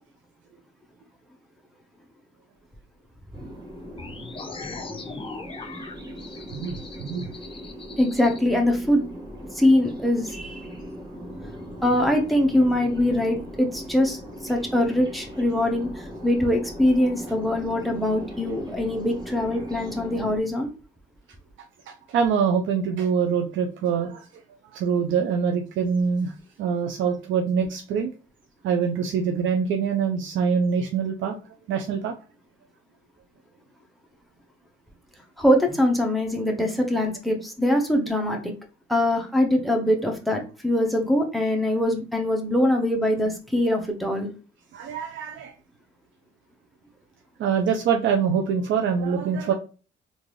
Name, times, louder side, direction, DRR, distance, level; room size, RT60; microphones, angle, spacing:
sound 1, 3.3-20.4, equal, 20° right, 1.5 m, -39 dB
sound 2, 4.0-8.4, left 4 dB, 25° left, 0.6 m, -40 dB
voice 1, 6.5-7.3 21.9-24.3 24.7-26.3 26.6-28.1 28.6-31.4 31.7-32.1 44.7-45.5 47.4-49.5, right 6 dB, 75° right, 3 dB, 0.5 m, -24 dB
voice 2, 8.0-9.0 9.5-10.6 11.8-20.7 35.4-38.5 38.9-44.3, left 1 dB, ahead, 3 dB, 0.9 m, -23 dB
3.7 x 2.6 x 3.1 m, 0.35 s
cardioid pair, 90°, 20 cm